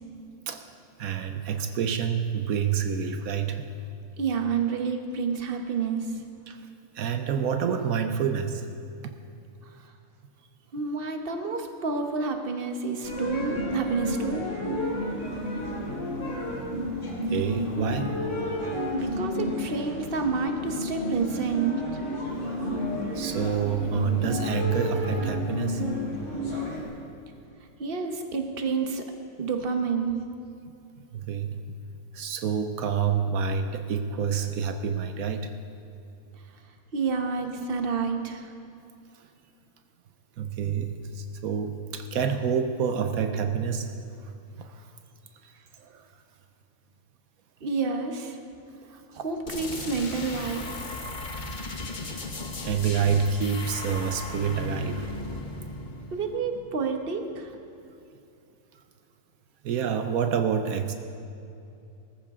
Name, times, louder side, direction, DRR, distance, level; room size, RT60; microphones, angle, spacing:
voice 1, 1.0-3.6 6.5-6.6 6.9-8.7 9.0-9.1 17.3-18.2 23.1-25.9 26.5-26.7 31.1-31.7 32.1-35.5 40.4-43.9 44.5-44.8 45.8-46.1 52.6-55.1 59.6-60.9, right 7 dB, 80° right, 7 dB, 1.2 m, -28 dB
voice 2, 4.2-6.2 10.7-14.5 18.9-21.8 27.8-29.0 29.4-30.2 36.9-38.5 47.6-48.4 48.9-50.6 56.1-57.5, right 5 dB, 45° right, 5 dB, 1.2 m, -29 dB
sound 1, 13.0-26.8, left 1 dB, 55° left, 3.3 m, -31 dB
sound 2, 49.5-57.0, left 2 dB, 35° left, 1.1 m, -36 dB
19.5 x 14.0 x 3.7 m, 2.7 s
omnidirectional pair, 1.5 m